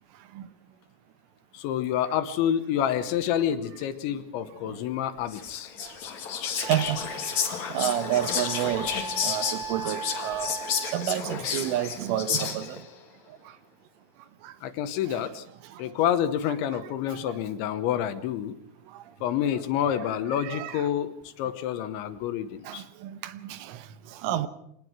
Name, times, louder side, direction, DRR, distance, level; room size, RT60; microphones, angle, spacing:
voice 1, 1.5-5.7 14.6-15.4 15.8-18.5 19.2-22.8, left 10 dB, 75° left, 3.1 m, -28 dB
Whispering, 5.3-12.9, left 7 dB, 50° left, 2.3 m, -31 dB
Wind instrument woodwind instrument, 6.0-6.1 6.6-11.3, right 5 dB, 40° right, 4.0 m, -39 dB
voice 2, 6.5-7.1 7.7-8.9 9.2-10.5 10.9-12.8 14.4-14.5 15.0-15.3 15.7-15.8 16.5-17.4 18.9-19.0 19.5-20.9 22.7-24.5, right 12 dB, 80° right, 3.5 m, -31 dB
25.5 x 19.0 x 6.1 m
omnidirectional pair, 5.8 m